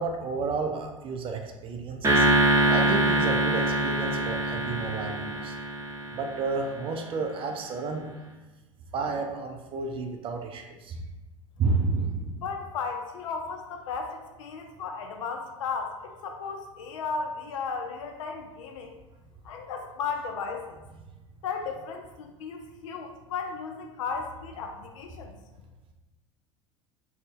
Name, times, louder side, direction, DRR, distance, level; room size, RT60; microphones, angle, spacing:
voice 1, 0.0-2.3 2.7-5.5 6.1-8.1 8.9-11.0 11.6-12.3, right 4 dB, 30° right, 3 dB, 0.4 m, -31 dB
sound 1, 2.0-6.5, right 1 dB, 15° right, 0.8 m, -24 dB
voice 2, 12.4-18.9 19.4-20.8 21.4-25.3, left 5 dB, 65° left, 4 dB, 0.4 m, -35 dB
3.8 x 2.1 x 3.6 m, 1.1 s
figure-of-eight pair, 80°, 18 cm